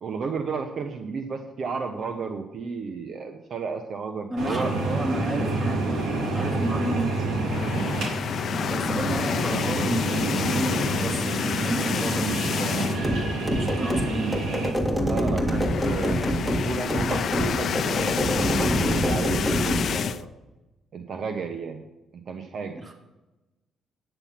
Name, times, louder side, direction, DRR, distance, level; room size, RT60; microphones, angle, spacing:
voice 1, 0.0-4.7 15.0-20.3 20.9-21.8 22.3-22.8, right 5 dB, 60° right, 5 dB, 1.1 m, -33 dB
voice 2, 4.3-5.9 6.3-7.1 8.6-14.4 22.8-22.9, right 1 dB, 25° right, 1 dB, 3.1 m, -32 dB
sound 1, 4.4-14.7, right 2 dB, 75° right, 3.8 m, -28 dB
sound 2, 7.4-13.2 13.6-13.8 14.0-14.1 15.2-20.2, left 7 dB, 60° left, 0.6 m, -29 dB
sound 3, 13.0-19.9, equal, 10° right, 2.0 m, -26 dB
9.7 x 9.1 x 5.8 m, 1.0 s
cardioid pair, 90°, 0 cm